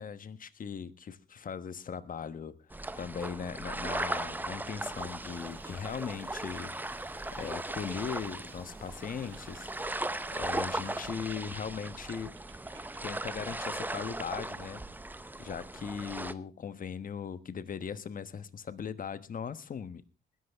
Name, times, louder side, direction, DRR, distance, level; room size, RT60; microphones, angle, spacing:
voice 1, 0.0-2.5 3.0-12.3 13.0-14.8 15.4-20.0, left 7 dB, 45° left, 14 dB, 1.2 m, -39 dB
sound 1, 2.7-16.3, right 2 dB, 10° right, 0.8 m, -38 dB
Typing, 4.0-13.9, right 7 dB, 75° right, 3.3 m, -58 dB
sound 2, 4.9-11.1, right 5 dB, 50° right, 3.0 m, -61 dB
20.0 x 11.5 x 3.5 m, 0.31 s
cardioid pair, 90°, 20 cm